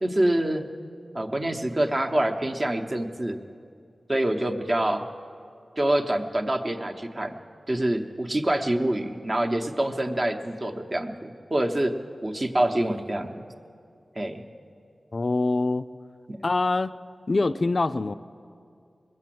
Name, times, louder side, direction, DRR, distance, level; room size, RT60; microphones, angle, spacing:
voice 1, 0.0-0.7 1.1-3.4 4.1-5.1 5.8-7.4 7.7-13.4 14.2-14.4 16.3-16.4, right 1 dB, 35° right, 4 dB, 0.9 m, -26 dB
voice 2, 15.1-15.9 16.4-16.9 17.3-18.1, left 3 dB, 50° left, 11 dB, 0.3 m, -24 dB
20.5 x 7.6 x 7.6 m, 2.4 s
wide cardioid pair, 70°, 0 cm